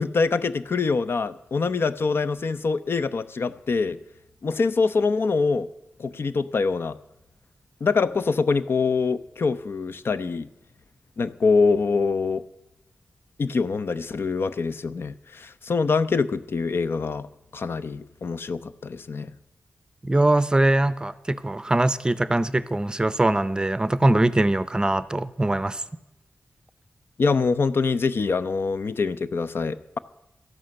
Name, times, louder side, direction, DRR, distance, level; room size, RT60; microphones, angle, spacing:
voice 1, 0.0-4.0 4.4-5.7 6.0-7.0 7.8-10.5 11.2-12.4 13.4-17.3 17.5-19.3 27.2-30.0, left 4 dB, 65° left, 14 dB, 0.7 m, -24 dB
voice 2, 20.0-25.8, right 1 dB, 20° right, 16 dB, 0.6 m, -22 dB
13.0 x 11.0 x 7.7 m, 0.88 s
wide cardioid pair, 120°, 4 cm